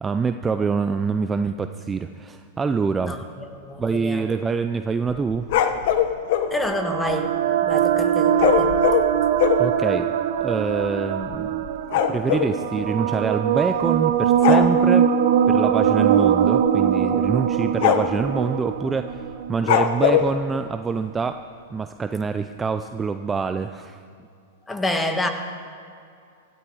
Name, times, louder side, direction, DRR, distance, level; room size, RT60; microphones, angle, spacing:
voice 1, 0.0-3.2 3.8-5.5 9.6-10.1 10.4-11.7 11.9-15.1 15.5-19.2 19.5-21.4 21.7-24.0, right 5 dB, 15° right, 8 dB, 0.5 m, -25 dB
voice 2, 3.5-4.3 6.5-7.3 7.6-8.7 24.7-25.3, left 1 dB, 10° left, 6 dB, 1.4 m, -27 dB
sound 1, 5.1-6.5 8.4-9.7 10.4-10.5 10.7-10.9 11.2-12.5 13.6-14.0 14.4-14.7 16.1-16.3 16.7-16.8 17.3-17.4 17.8-18.3 19.6-20.3, left 9 dB, 60° left, 1.0 m, -21 dB
sound 2, 6.4-20.0, right 9 dB, 65° right, 0.9 m, -22 dB
16.0 x 12.0 x 4.8 m, 2.4 s
hypercardioid pair, 125°, 0 cm